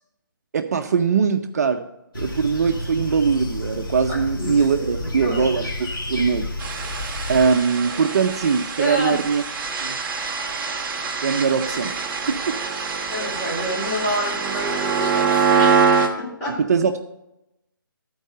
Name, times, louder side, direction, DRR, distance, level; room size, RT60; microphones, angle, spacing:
voice 1, 0.5-1.8 2.1-5.7 6.1-6.5 7.3-9.4 9.8-10.0 11.2-12.6 16.6-17.0, right 5 dB, 45° right, 7 dB, 0.6 m, -21 dB
sound 1, 2.1-7.5, left 2 dB, 75° left, 2.2 m, -31 dB
voice 2, 4.1-5.6 8.8-9.2 13.1-15.9 16.2-16.6, equal, 15° left, -5 dB, 3.5 m, -28 dB
sound 2, 6.6-16.1, right 5 dB, 15° right, 0.8 m, -24 dB
13.0 x 4.7 x 5.4 m, 0.89 s
hypercardioid pair, 160°, 12 cm